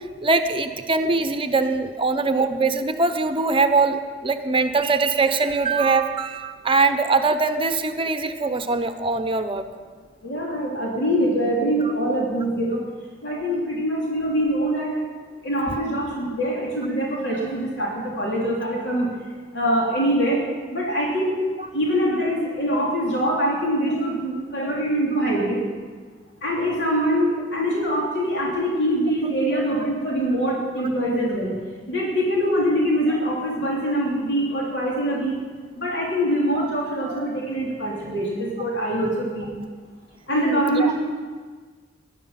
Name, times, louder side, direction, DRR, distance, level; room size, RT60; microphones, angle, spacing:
voice 1, 0.2-9.6 29.2-29.6 40.3-40.9, right 3 dB, 30° right, 9 dB, 0.8 m, -22 dB
voice 2, 10.2-12.8 13.2-15.0 15.4-19.1 19.5-20.4 20.7-21.3 21.7-25.6 26.4-31.5 31.9-35.3 35.7-39.5 40.3-40.9, equal, 80° left, -4 dB, 3.3 m, -23 dB
18.0 x 11.5 x 5.8 m, 1.5 s
head